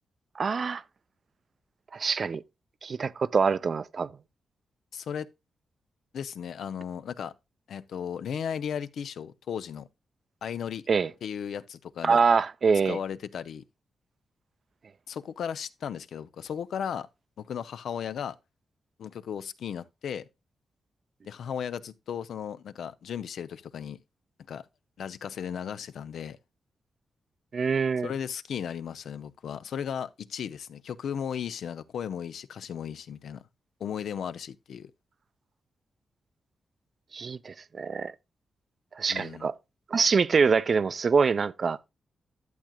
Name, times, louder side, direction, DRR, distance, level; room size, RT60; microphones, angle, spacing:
voice 1, 0.4-0.8 1.9-2.4 2.8-4.1 10.9-11.1 12.0-13.0 27.5-28.1 37.1-38.1 39.0-39.5 39.9-41.8, right 5 dB, 50° right, 0.5 m, -25 dB
voice 2, 4.9-5.3 6.1-7.3 7.7-9.9 10.4-10.8 11.2-12.2 12.9-13.6 15.1-17.1 17.4-18.4 19.0-20.3 21.2-24.0 24.5-24.7 25.0-26.4 28.0-33.4 33.8-34.9 39.1-39.5, left 8 dB, 80° left, 0.6 m, -35 dB
12.0 x 7.4 x 2.2 m
cardioid pair, 95°, 0 cm